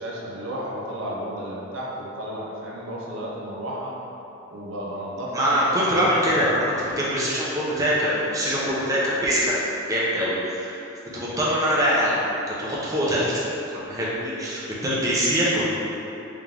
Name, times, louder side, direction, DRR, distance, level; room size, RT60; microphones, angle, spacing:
voice 1, 0.0-4.0 4.5-5.6, equal, 80° right, -4 dB, 0.6 m, -33 dB
voice 2, 5.3-9.5 9.9-10.8 11.1-12.1 12.5-13.3 13.7-15.6, equal, 15° right, -8 dB, 0.7 m, -23 dB
3.5 x 3.0 x 3.6 m, 3.0 s
head